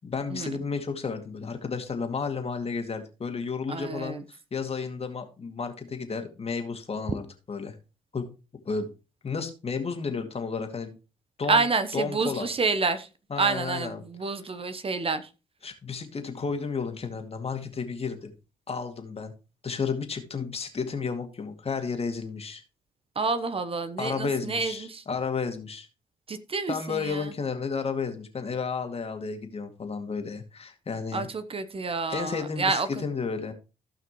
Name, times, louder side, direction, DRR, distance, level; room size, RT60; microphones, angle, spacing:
voice 1, 0.0-7.7 8.1-8.3 8.6-8.9 9.2-11.0 11.4-11.7 11.9-12.5 13.3-14.3 15.6-18.3 18.7-19.3 19.6-22.6 24.0-25.9 26.7-31.3 32.1-33.5, left 5 dB, 40° left, 6 dB, 2.2 m, -32 dB
voice 2, 3.7-4.2 11.5-13.1 13.4-15.3 23.1-25.0 26.3-27.3 31.1-33.0, right 4 dB, 35° right, 11 dB, 1.0 m, -28 dB
16.0 x 5.8 x 3.1 m, 0.31 s
hypercardioid pair, 50°, 16 cm